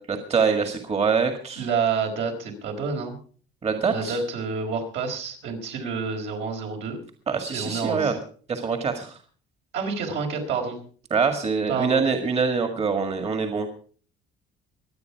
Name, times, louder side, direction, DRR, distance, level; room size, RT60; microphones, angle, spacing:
voice 1, 0.1-1.6 3.6-4.2 7.3-8.2 8.5-9.2 11.1-13.7, right 5 dB, 30° right, 6 dB, 1.9 m, -24 dB
voice 2, 1.6-3.2 3.9-7.0 7.5-8.2 9.7-10.8 11.7-12.0, right 5 dB, 70° right, 2 dB, 4.7 m, -28 dB
24.0 x 8.7 x 4.7 m, 0.43 s
cardioid pair, 130°, 20 cm